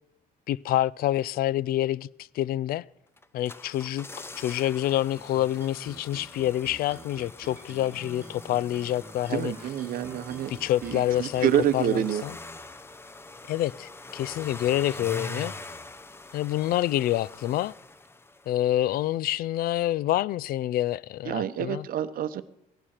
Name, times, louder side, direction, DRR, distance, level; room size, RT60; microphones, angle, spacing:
voice 1, 0.5-2.1 2.3-2.9 3.3-9.5 10.5-12.3 13.5-15.5 16.3-17.7 18.5-21.9, left 13 dB, 60° left, 0.4 m, -27 dB
sound 1, 3.2-18.7 18.9-19.0, left 2 dB, 15° left, 0.6 m, -43 dB
sound 2, 5.1-12.1, right 2 dB, 15° right, 2.1 m, -48 dB
voice 2, 9.3-12.2 21.3-22.4, right 10 dB, 55° right, 0.8 m, -28 dB
16.5 x 11.5 x 4.4 m
cardioid pair, 110°, 17 cm